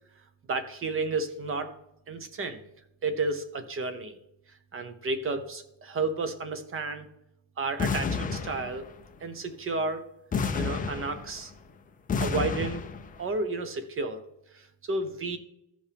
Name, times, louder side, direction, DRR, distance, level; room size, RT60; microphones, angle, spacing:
voice 1, 0.5-1.8 2.1-2.6 3.0-4.2 4.7-7.1 7.6-8.9 9.2-10.0 10.5-11.5 12.2-12.8 13.2-14.2 14.5-15.4, right 3 dB, 25° right, 10 dB, 0.8 m, -32 dB
sound 1, 7.8-9.1 10.3-11.6 12.1-13.2, left 5 dB, 20° left, 0.4 m, -30 dB
15.0 x 5.2 x 3.4 m, 0.83 s
cardioid pair, 180°, 50 cm